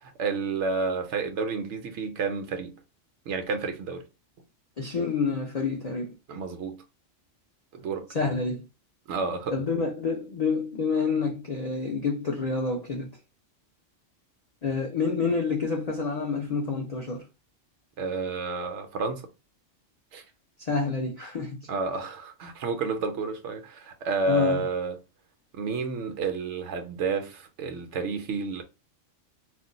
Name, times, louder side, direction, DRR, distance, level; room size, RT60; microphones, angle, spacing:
voice 1, 0.0-2.8 3.3-4.0 6.3-6.8 7.7-8.1 9.1-9.5 18.0-19.3 20.1-20.2 21.7-25.0 25.5-28.6, right 4 dB, 70° right, 0.9 m, -30 dB
voice 2, 4.8-6.2 8.1-8.7 9.5-13.1 14.6-17.2 20.6-21.6 24.3-24.6, left 4 dB, 60° left, 0.4 m, -28 dB
2.4 x 2.2 x 3.8 m
omnidirectional pair, 1.3 m